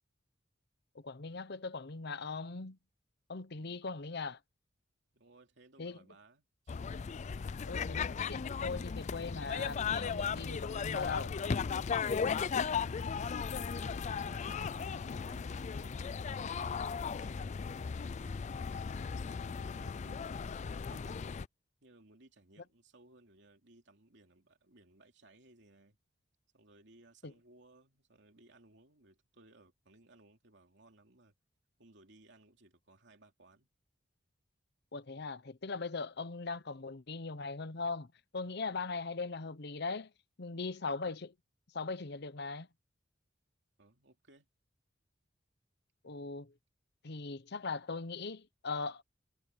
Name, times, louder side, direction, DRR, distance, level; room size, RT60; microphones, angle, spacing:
voice 1, 0.9-2.8 3.3-4.4 5.8-6.0 7.7-11.4 27.2-27.3 34.9-38.1 38.3-40.1 40.4-41.3 41.7-42.7 46.0-46.5 47.0-49.0, left 4 dB, 60° left, 0.9 m, -40 dB
voice 2, 3.5-3.8 5.1-6.8 12.3-17.6 18.0-18.4 19.0-21.2 21.8-26.0 26.5-31.3 31.8-33.7 43.8-44.5, right 2 dB, 65° right, 2.9 m, -62 dB
sound 1, 6.7-21.5, left 6 dB, 40° left, 0.4 m, -36 dB
head